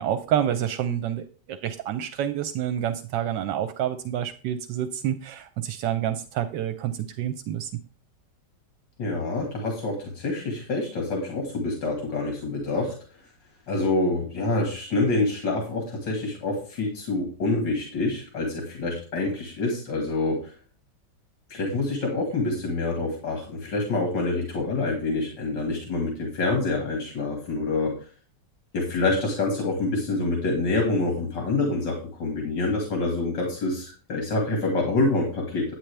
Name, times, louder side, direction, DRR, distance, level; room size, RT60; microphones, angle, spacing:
voice 1, 0.0-7.8, right 10 dB, 80° right, 10 dB, 1.3 m, -28 dB
voice 2, 9.0-12.9 13.7-20.5 21.5-27.9 28.7-35.7, left 2 dB, 80° left, 1 dB, 2.5 m, -26 dB
10.0 x 9.1 x 3.3 m, 0.39 s
omnidirectional pair, 1.9 m